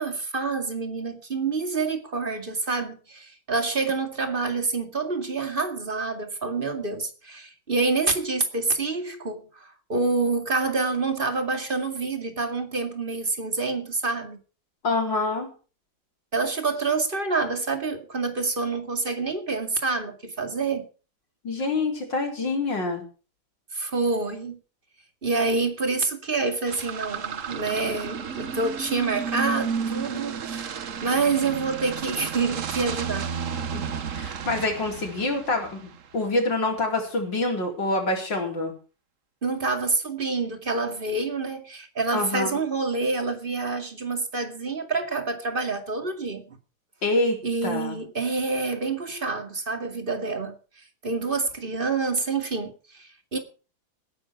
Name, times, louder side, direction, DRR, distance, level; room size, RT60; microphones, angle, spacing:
voice 1, 0.0-14.4 16.3-20.9 23.7-24.6 25.2-33.3 39.4-46.6 47.4-50.5 51.0-53.4, right 3 dB, 30° right, 2.3 m, -27 dB
voice 2, 14.8-15.5 21.4-23.0 33.7-33.8 34.1-38.7 42.1-42.6 47.0-47.9, left 2 dB, 80° left, 5.0 m, -26 dB
sound 1, 26.7-36.2, right 6 dB, 50° right, 1.3 m, -32 dB
18.0 x 10.5 x 4.7 m
omnidirectional pair, 2.0 m